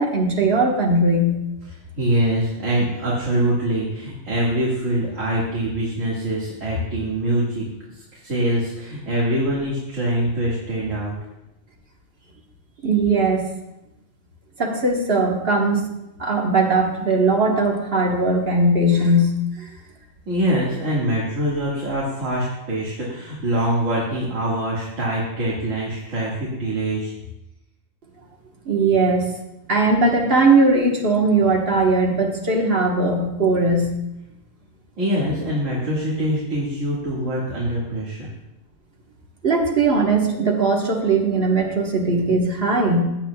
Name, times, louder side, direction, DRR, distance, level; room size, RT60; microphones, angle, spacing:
voice 1, 0.0-1.4 12.8-13.5 14.6-15.8 16.2-19.7 28.6-29.2 29.7-33.9 39.4-43.0, right 2 dB, 50° right, 1 dB, 1.5 m, -19 dB
voice 2, 2.0-7.6 8.2-11.1 20.3-27.1 35.0-38.3, right 1 dB, 80° right, -6 dB, 2.3 m, -24 dB
16.0 x 8.2 x 2.3 m, 0.91 s
omnidirectional pair, 1.3 m